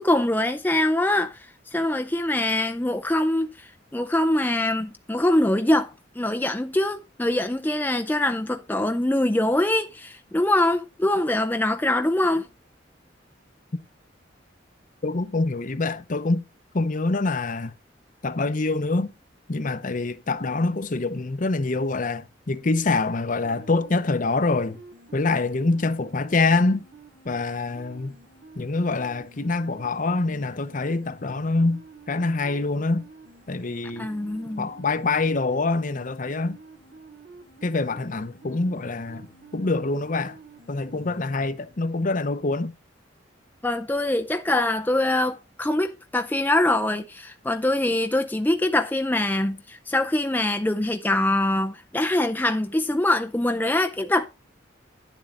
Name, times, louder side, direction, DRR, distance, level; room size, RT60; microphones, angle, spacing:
voice 1, 0.0-1.4 1.7-3.5 3.9-5.9 6.2-12.5 34.0-34.7 43.6-54.3, left 1 dB, 10° left, 0.5 m, -23 dB
voice 2, 15.0-16.4 16.7-17.7 18.2-19.1 19.5-24.8 25.1-26.8 27.2-28.1 28.6-31.8 32.1-33.0 33.5-34.1 34.6-36.6 37.6-39.3 39.5-40.4 40.7-42.7, left 3 dB, 45° left, 0.8 m, -25 dB
sound 1, 23.4-41.5, right 4 dB, 75° right, 2.5 m, -49 dB
10.0 x 7.4 x 3.7 m
head